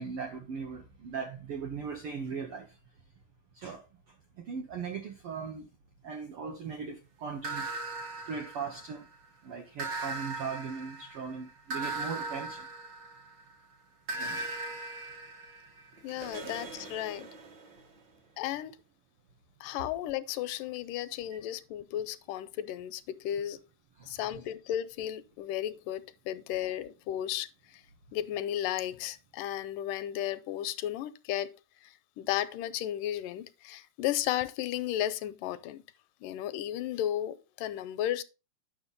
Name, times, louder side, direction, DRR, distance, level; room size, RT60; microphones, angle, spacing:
voice 1, 0.0-2.8 3.5-5.7 6.0-7.7 8.3-9.1 9.4-12.7 14.1-14.5 24.0-24.4, right 5 dB, 85° right, 1.2 m, -39 dB
sound 1, 7.4-9.1 9.8-13.5 14.1-17.8, right 2 dB, 60° right, 1.2 m, -39 dB
voice 2, 16.0-17.3 18.4-18.8 19.6-23.6 24.1-27.8 28.1-31.5 31.8-35.8 36.2-38.2, left 12 dB, 85° left, 2.1 m, -34 dB
9.6 x 6.2 x 3.9 m
omnidirectional pair, 3.8 m